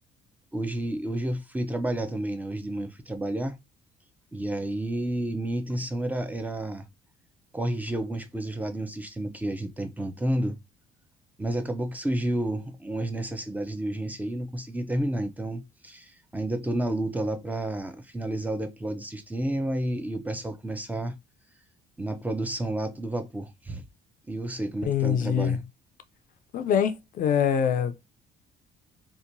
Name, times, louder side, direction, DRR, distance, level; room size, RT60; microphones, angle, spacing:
voice 1, 0.5-3.6 4.3-6.8 7.5-10.6 11.4-21.1 22.0-23.8 24.3-25.6, right 1 dB, 10° right, 0.4 m, -30 dB
voice 2, 24.9-25.6 26.5-28.2, left 8 dB, 55° left, 0.4 m, -24 dB
2.9 x 2.1 x 2.5 m
cardioid pair, 110°, 17 cm